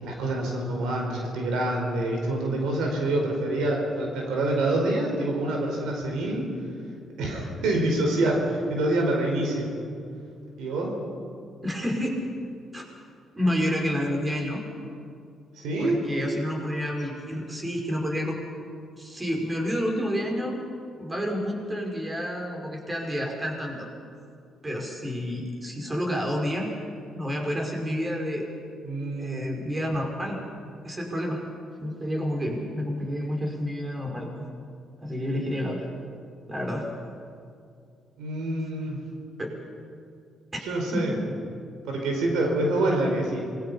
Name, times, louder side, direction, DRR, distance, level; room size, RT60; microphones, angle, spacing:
voice 1, 0.0-6.5 7.2-9.7 10.6-10.9 15.5-16.1 28.8-29.4 38.2-39.0 40.7-41.1 41.8-43.5, right 1 dB, 85° right, 1 dB, 4.8 m, -26 dB
voice 2, 11.6-12.2 12.7-12.8 13.3-14.6 15.8-18.4 19.0-20.6 21.0-23.9 24.6-26.7 27.1-28.5 29.2-30.4 30.8-31.4 31.8-34.3 35.0-35.9 36.5-36.9 39.4-39.5 40.5-40.6 40.9-41.2, equal, 20° right, 0 dB, 5.3 m, -29 dB
26.5 x 22.0 x 5.7 m, 2.4 s
cardioid pair, 90°, 0 cm